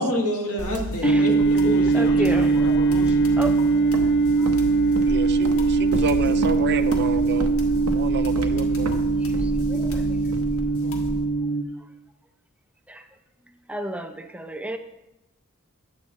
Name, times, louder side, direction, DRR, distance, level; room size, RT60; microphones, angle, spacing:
voice 1, 0.0-3.6 10.8-11.0, equal, 90° left, 1 dB, 1.8 m, -29 dB
sound 1, 0.6-11.2, equal, 70° left, 1.5 m, -34 dB
sound 2, 1.0-11.6, right 3 dB, 45° left, 0.6 m, -21 dB
voice 2, 1.9-2.7 3.4-3.5 9.7-10.0 12.9-13.0 13.7-14.8, right 1 dB, 5° right, 6 dB, 0.6 m, -31 dB
Walk footsteps, 3.3-11.2, right 2 dB, 90° right, 0.8 m, -33 dB
voice 3, 5.0-7.5 7.9-8.9, right 5 dB, 50° right, 11 dB, 0.5 m, -30 dB
9.4 x 4.7 x 7.3 m, 0.91 s
head